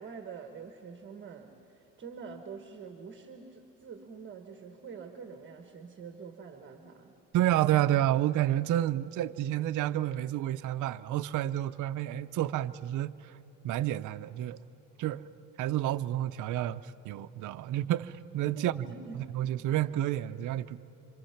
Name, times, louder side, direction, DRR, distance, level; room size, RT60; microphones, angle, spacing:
voice 1, 0.0-7.1 18.6-19.2, right 5 dB, 35° right, 1.3 m, -46 dB
voice 2, 7.3-13.3 13.6-14.6 15.0-15.3 15.6-18.8 19.1-20.8, right 13 dB, 60° right, 0.6 m, -30 dB
26.5 x 25.5 x 5.8 m
cardioid pair, 135°, 34 cm